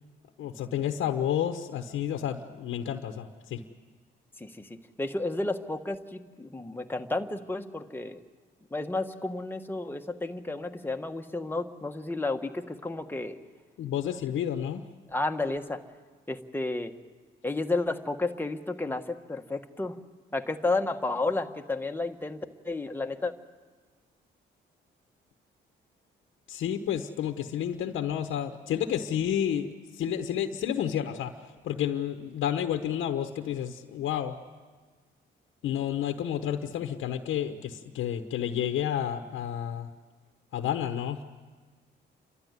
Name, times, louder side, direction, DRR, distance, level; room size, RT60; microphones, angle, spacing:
voice 1, 0.4-3.6 13.8-14.8 26.5-29.7 30.0-31.3 31.6-34.3 35.6-39.9 40.5-41.2, left 10 dB, 80° left, 6 dB, 1.1 m, -30 dB
voice 2, 4.4-8.2 8.7-13.4 15.1-15.8 16.3-16.9 17.4-20.0 20.3-23.3, left 2 dB, 10° left, 5 dB, 1.4 m, -32 dB
29.0 x 12.5 x 9.5 m, 1.4 s
cardioid pair, 90°, 20 cm